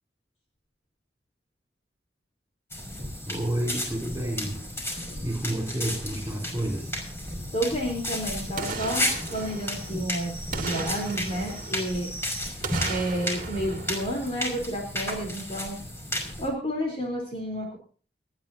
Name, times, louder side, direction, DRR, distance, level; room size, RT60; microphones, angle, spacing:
sound 1, 2.7-16.5, left 1 dB, 15° left, 5.7 m, -33 dB
voice 1, 3.3-7.0, right 1 dB, 15° right, 0 dB, 4.6 m, -31 dB
voice 2, 7.5-12.1 12.9-15.8 16.4-17.8, equal, 35° left, 0 dB, 3.7 m, -30 dB
Boom, 8.6-10.1 10.5-12.2 12.6-14.9 15.2-15.3, right 3 dB, 50° right, 2.1 m, -36 dB
29.0 x 10.0 x 2.8 m, 0.41 s
head